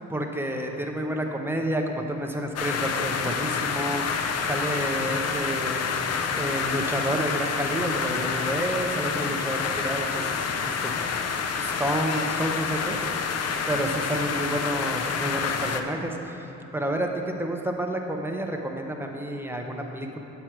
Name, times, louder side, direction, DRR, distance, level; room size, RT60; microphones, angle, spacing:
voice 1, 0.1-5.9 6.3-10.2 10.6-10.9 11.5-13.0 13.7-16.5 16.7-20.2, right 1 dB, 5° right, 2 dB, 0.7 m, -29 dB
sound 1, 2.6-15.8, left 6 dB, 55° left, 0.6 m, -28 dB
7.8 x 6.1 x 4.5 m, 2.9 s
cardioid pair, 90°, 30 cm